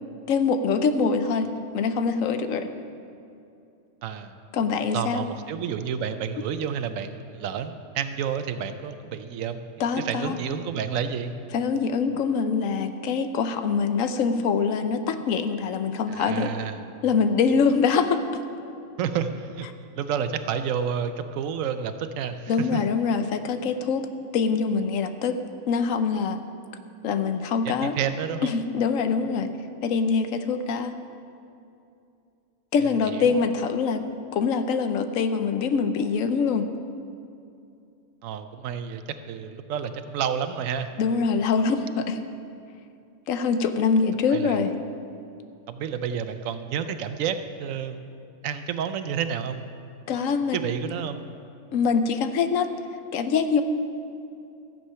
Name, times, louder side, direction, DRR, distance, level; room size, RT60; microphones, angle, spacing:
voice 1, 0.3-1.5 1.7-2.7 4.5-5.2 9.8-10.4 11.5-16.5 17.0-18.2 22.5-24.1 24.3-25.4 25.7-26.4 27.0-28.0 28.4-29.5 29.8-30.9 32.7-34.0 34.3-36.7 41.0-42.2 43.3-44.7 50.1-50.6 51.7-52.7 53.1-53.6, left 5 dB, 85° left, 9 dB, 1.1 m, -24 dB
voice 2, 4.0-4.3 4.9-9.6 9.9-11.3 16.1-16.8 19.0-19.7 20.0-22.8 27.6-28.6 32.8-33.4 38.2-39.0 39.3-40.9 44.3-44.6 45.7-48.0 48.4-49.7 50.5-51.2, right 7 dB, 85° right, 9 dB, 1.0 m, -30 dB
14.5 x 7.6 x 5.6 m, 2.6 s
omnidirectional pair, 1.3 m